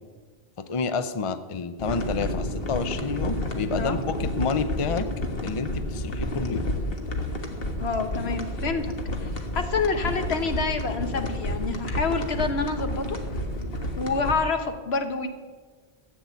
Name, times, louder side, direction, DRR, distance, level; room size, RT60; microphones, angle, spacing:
voice 1, 0.6-5.1 5.4-6.6, left 4 dB, 35° left, 10 dB, 0.6 m, -29 dB
sound 1, 1.8-14.3, left 1 dB, 65° left, 1.6 m, -30 dB
voice 2, 7.8-8.9 9.2-13.2 14.0-15.3, left 4 dB, 85° left, 6 dB, 1.5 m, -27 dB
14.0 x 7.9 x 8.3 m, 1.4 s
omnidirectional pair, 1.0 m